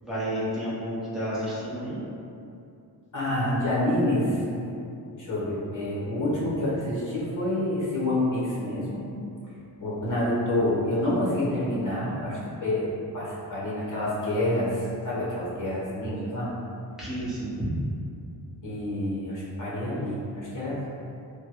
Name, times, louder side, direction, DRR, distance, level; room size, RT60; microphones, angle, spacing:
voice 1, 0.0-2.0 17.0-17.9, equal, ahead, -10 dB, 0.8 m, -30 dB
voice 2, 3.1-4.4 5.2-9.0 9.8-14.8 15.0-16.5 18.6-20.8, left 1 dB, 45° left, -7 dB, 1.0 m, -27 dB
3.4 x 2.2 x 2.9 m, 2.6 s
wide cardioid pair, 140°, 42 cm